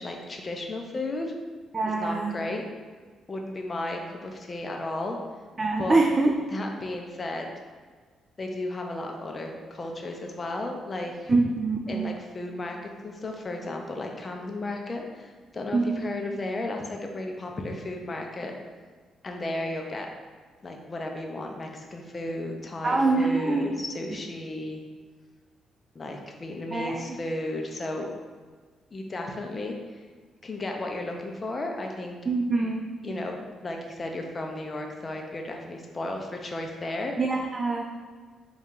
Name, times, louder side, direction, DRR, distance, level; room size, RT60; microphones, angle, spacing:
voice 1, 0.0-1.4 1.9-2.7 3.3-5.2 5.8-6.0 6.5-7.5 8.4-11.4 11.9-18.5 19.2-20.1 20.6-24.8 25.9-28.1 28.9-30.0 30.4-32.2 33.0-33.4 33.6-37.1, left 2 dB, 30° left, 2 dB, 0.5 m, -34 dB
voice 2, 1.7-2.3 5.6-6.3 11.3-12.1 15.7-16.0 22.8-23.6 26.7-27.0 32.3-32.9 37.2-37.8, right 3 dB, 30° right, 1 dB, 0.3 m, -24 dB
4.0 x 2.3 x 3.7 m, 1.5 s
cardioid pair, 90°, 0 cm